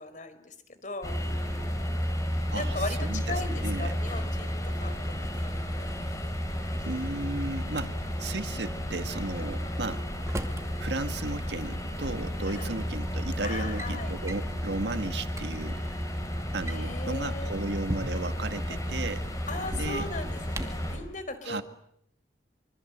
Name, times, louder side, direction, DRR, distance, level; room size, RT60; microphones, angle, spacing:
voice 1, 0.0-1.6 2.5-5.1 5.5-5.9 9.4-9.6 12.5-12.7 13.4-14.2 16.7-17.6 19.5-21.6, left 2 dB, 45° left, 11 dB, 4.5 m, -38 dB
sound 1, 1.0-20.9, equal, 20° left, 7.1 m, -32 dB
voice 2, 2.5-4.0 6.8-10.4 10.8-16.0 16.5-19.3 19.8-20.1 21.4-21.6, right 2 dB, 70° right, 9 dB, 1.9 m, -35 dB
Drawer open or close, 6.5-7.9 9.5-10.7 12.0-12.1 12.9-13.2 13.5-13.9 14.3-14.5 15.0-15.1 15.3-15.5 16.5-18.4 19.6-20.9, right 1 dB, 15° right, 2.4 m, -38 dB
26.0 x 25.0 x 8.0 m, 0.71 s
head